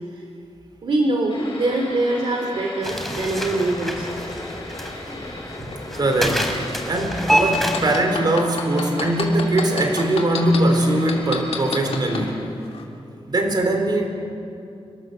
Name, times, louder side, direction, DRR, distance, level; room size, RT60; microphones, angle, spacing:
voice 1, 0.8-4.1 5.6-5.7, right 2 dB, 60° right, 1 dB, 2.5 m, -23 dB
sound 1, 1.3-12.3, left 2 dB, 60° left, 7.5 m, -37 dB
sound 2, 2.8-8.0, equal, ahead, 3.2 m, -27 dB
voice 2, 6.0-6.6 6.9-12.4 13.3-14.1, right 1 dB, 45° right, 4 dB, 3.8 m, -21 dB
sound 3, 7.3-10.6 11.1-12.2 12.7-12.8, left 6 dB, 80° left, 2.9 m, -28 dB
28.5 x 22.5 x 6.8 m, 2.6 s
wide cardioid pair, 145°, 10 cm